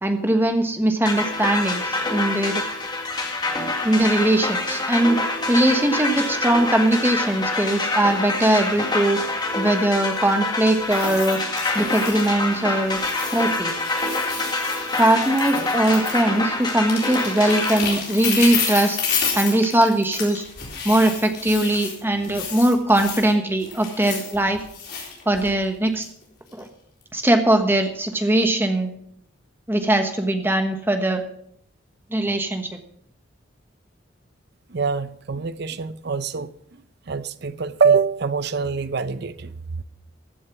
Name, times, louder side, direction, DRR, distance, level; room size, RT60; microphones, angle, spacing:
voice 1, 0.0-2.6 3.8-5.2 5.5-9.2 9.5-11.4 11.7-13.0 13.3-13.7 15.0-19.0 19.4-20.4 20.8-24.6 25.3-26.0 26.5-26.7 27.1-28.9 29.7-31.2 32.1-32.7, right 1 dB, 10° right, 1.3 m, -20 dB
sound 1, 1.1-17.8, left 2 dB, 20° left, 2.0 m, -26 dB
sound 2, 10.8-12.6 12.8-16.4 16.6-23.3 23.6-25.6 26.0-26.2 26.6-26.7, left 6 dB, 55° left, 4.1 m, -30 dB
voice 2, 34.7-36.5 37.1-39.8, right 5 dB, 55° right, 0.6 m, -24 dB
14.5 x 7.7 x 6.1 m
head